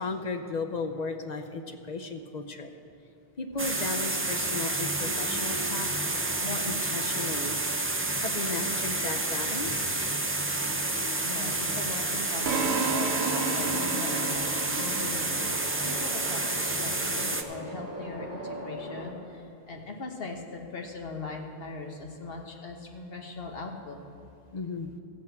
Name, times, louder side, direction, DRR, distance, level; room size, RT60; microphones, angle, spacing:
voice 1, 0.0-2.7 3.4-7.6 8.2-9.9 24.5-24.9, left 3 dB, 45° left, 6 dB, 0.8 m, -35 dB
sound 1, 3.5-19.1, equal, 25° left, 2.4 m, -42 dB
sound 2, 3.6-17.4, right 2 dB, 15° right, 0.4 m, -30 dB
voice 2, 11.2-24.0, left 3 dB, 70° left, 2 dB, 1.4 m, -40 dB
sound 3, 12.5-16.5, right 5 dB, 75° right, 0.9 m, -33 dB
14.5 x 5.4 x 7.8 m, 2.6 s
omnidirectional pair, 1.0 m